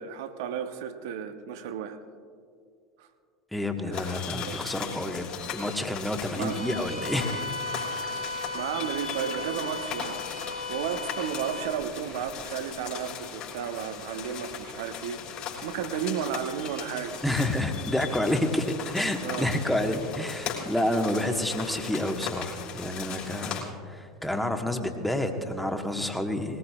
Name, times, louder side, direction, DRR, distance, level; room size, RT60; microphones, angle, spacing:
voice 1, 0.0-2.0 3.0-3.1 3.8-4.1 4.5-4.6 6.3-6.7 8.5-10.2 10.7-15.2 15.6-17.2 19.2-19.5, right 8 dB, 60° right, 9 dB, 1.0 m, -33 dB
voice 2, 3.5-7.4 17.2-26.6, left 1 dB, 5° left, 4 dB, 1.4 m, -29 dB
sound 1, 3.9-23.6, left 7 dB, 45° left, 3.7 m, -38 dB
Bowed string instrument, 6.5-11.8, left 3 dB, 75° left, 3.2 m, -36 dB
21.0 x 19.0 x 2.4 m, 2.2 s
figure-of-eight pair, 80°, 2 cm